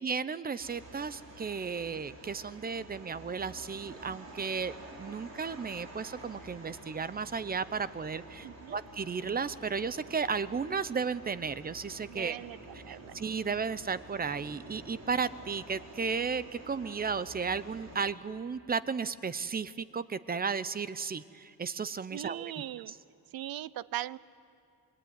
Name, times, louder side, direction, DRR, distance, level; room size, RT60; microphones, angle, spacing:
voice 1, 0.0-12.4 12.9-22.5, right 5 dB, 25° right, 15 dB, 0.6 m, -34 dB
sound 1, 0.6-18.1, right 1 dB, 45° right, 4.6 m, -49 dB
voice 2, 8.4-8.8 12.1-13.2 22.1-22.9 23.3-24.2, right 13 dB, 70° right, 19 dB, 0.6 m, -40 dB
26.5 x 23.0 x 9.5 m, 2.5 s
wide cardioid pair, 150°, 37 cm